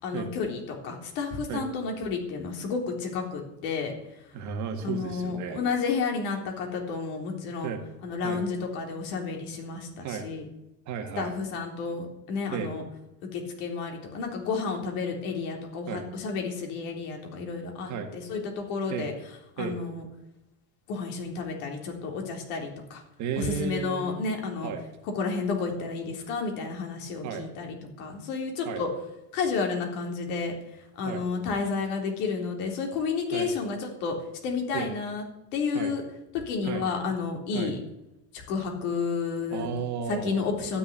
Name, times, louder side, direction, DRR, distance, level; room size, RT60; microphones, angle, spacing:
voice 1, 0.0-3.9 4.8-7.7 8.0-10.5 11.2-12.8 13.3-19.1 19.6-20.1 20.9-23.0 23.4-24.7 25.2-28.9 29.3-30.5 31.0-34.2 34.4-35.2 35.5-36.0 36.5-37.8 38.3-39.7 40.1-40.8, left 5 dB, 60° left, 2 dB, 3.8 m, -31 dB
voice 2, 4.3-5.6 7.6-7.8 8.2-8.4 10.0-10.3 10.9-11.3 12.5-12.7 15.9-16.0 17.9-18.1 18.9-19.1 19.6-19.8 23.2-24.2 24.6-24.8 27.2-27.4 28.7-28.8 31.0-31.2 33.3-33.5 34.7-34.9 35.7-35.9 36.6-36.8 37.5-37.7 39.5-40.4, right 7 dB, 35° right, 5 dB, 1.8 m, -33 dB
12.5 x 6.8 x 9.9 m, 0.91 s
supercardioid pair, 160°, 48 cm